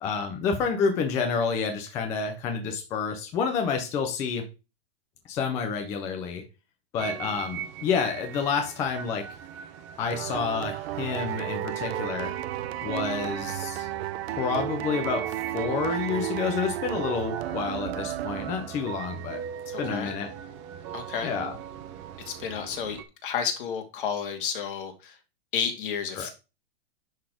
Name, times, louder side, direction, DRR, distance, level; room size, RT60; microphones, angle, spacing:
voice 1, 0.0-4.5 5.3-6.4 6.9-9.3 10.0-12.3 12.8-13.9 14.3-19.4 19.8-20.3 21.2-21.6 26.1-26.3, left 5 dB, 10° left, 4 dB, 0.4 m, -29 dB
sound 1, 7.0-23.0, right 9 dB, 30° right, 0.9 m, -40 dB
sound 2, 10.1-19.0, right 13 dB, 80° right, 0.7 m, -33 dB
voice 2, 19.7-20.1 20.9-21.3 22.2-25.2 25.5-26.3, left 7 dB, 55° left, 5 dB, 2.3 m, -31 dB
10.0 x 4.1 x 4.9 m, 0.29 s
supercardioid pair, 175°, 31 cm